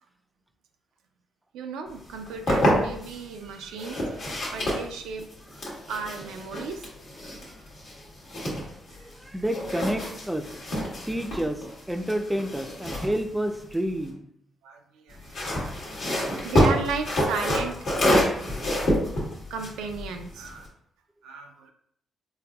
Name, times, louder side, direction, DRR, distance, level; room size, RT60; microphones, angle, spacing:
voice 1, 1.5-5.3 5.9-6.9 7.2-7.6 8.9-9.1 14.6-18.2 19.5-20.7 21.2-21.7, right 5 dB, 85° right, 4 dB, 0.3 m, -35 dB
sound 1, 2.1-3.2 3.8-9.2 9.4-14.1 15.1-20.7, equal, 70° left, 1.2 m, -28 dB
voice 2, 8.0-8.6 9.0-10.5 11.1-14.3, right 1 dB, 10° right, 6 dB, 0.4 m, -30 dB
4.0 x 2.6 x 2.3 m, 0.69 s
supercardioid pair, 55°, 0 cm